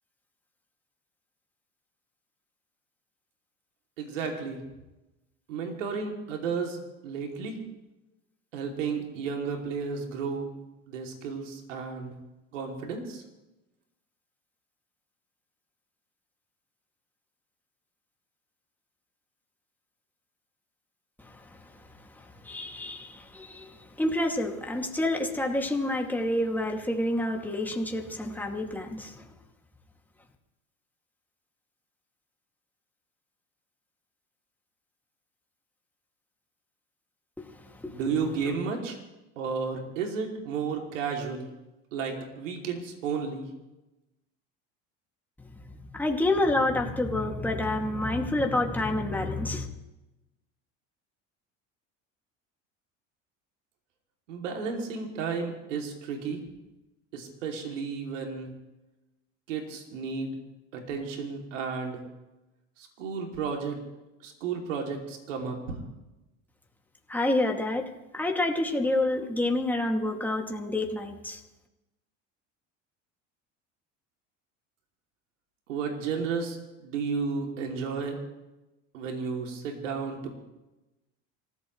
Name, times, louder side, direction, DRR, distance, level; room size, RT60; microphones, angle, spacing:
voice 1, 4.0-4.6 5.5-6.8 7.0-7.6 8.5-10.5 10.9-12.2 12.5-13.2 37.9-39.0 39.4-41.5 41.9-43.5 54.3-56.4 57.1-58.5 59.5-60.3 60.7-62.0 62.8-63.8 64.2-65.8 75.7-78.2 78.9-80.4, right 5 dB, 90° right, 1 dB, 3.0 m, -33 dB
voice 2, 22.4-23.7 24.0-29.2 37.4-37.5 37.8-38.0 45.9-49.7 67.1-67.9 68.1-71.4, left 1 dB, 5° left, 1 dB, 2.5 m, -28 dB
26.5 x 15.0 x 3.3 m, 0.99 s
hypercardioid pair, 85°, 37 cm